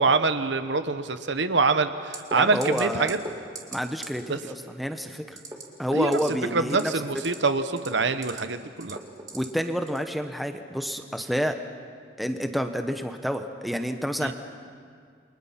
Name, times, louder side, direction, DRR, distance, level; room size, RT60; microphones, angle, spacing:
voice 1, 0.0-3.2 4.3-4.4 5.9-9.0 14.2-14.3, right 4 dB, 70° right, 10 dB, 1.0 m, -25 dB
sound 1, 2.1-2.4 2.6-2.8 3.1-3.3 3.6-3.8 4.0-4.1 5.3-5.6 6.0-6.3 6.7-7.4 7.7-8.4 8.8-9.5 9.9-10.0, right 3 dB, 20° right, 2.3 m, -37 dB
voice 2, 2.3-3.1 3.7-5.4 5.8-6.9 9.3-11.6 12.2-14.3, equal, ahead, 6 dB, 1.0 m, -29 dB
29.5 x 23.5 x 5.8 m, 2.1 s
head